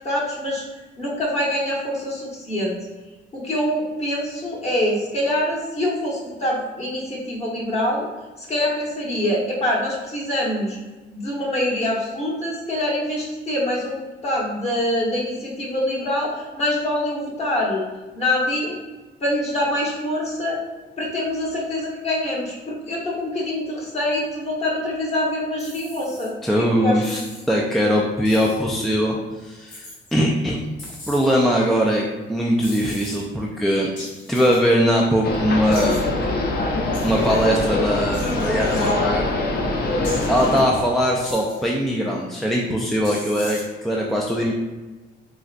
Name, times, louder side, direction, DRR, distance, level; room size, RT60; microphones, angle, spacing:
voice 1, 0.0-0.6 1.0-2.8 3.3-8.1 8.4-10.8 11.1-17.8 18.1-18.8 19.2-20.6 21.0-26.4 26.8-27.2, left 1 dB, 35° left, -4 dB, 1.1 m, -25 dB
sound 1, 25.6-26.3 27.0-27.5 28.2-28.6 29.7-30.1 30.8-31.4 32.6-33.2 34.0-34.7 35.7-36.0 36.9-37.5 38.1-38.9 40.0-40.6 41.2-41.7 43.0-43.6, left 1 dB, 75° left, 1.1 m, -39 dB
voice 2, 26.4-27.2 27.5-29.2 29.4-29.8 30.1-30.6 31.1-33.9 34.3-36.1 37.0-39.4 40.3-44.5, equal, ahead, -2 dB, 0.3 m, -21 dB
sound 2, 35.2-40.6, left 2 dB, 50° left, 0.6 m, -23 dB
3.7 x 2.2 x 2.4 m, 1.2 s
cardioid pair, 90°, 20 cm